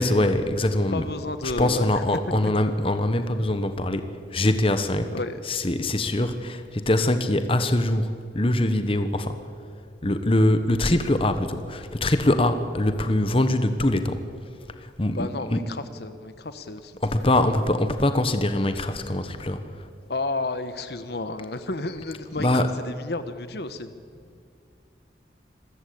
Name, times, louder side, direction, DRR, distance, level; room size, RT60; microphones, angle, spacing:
voice 1, 0.0-1.1 1.4-9.5 10.0-14.3 14.7-15.7 17.0-19.9 22.3-22.9, left 1 dB, 30° left, 9 dB, 1.1 m, -23 dB
voice 2, 0.9-2.0 2.4-2.5 5.1-5.7 15.2-17.0 17.4-17.5 20.1-23.9, left 2 dB, 60° left, 11 dB, 1.1 m, -32 dB
26.5 x 14.5 x 8.6 m, 2.2 s
head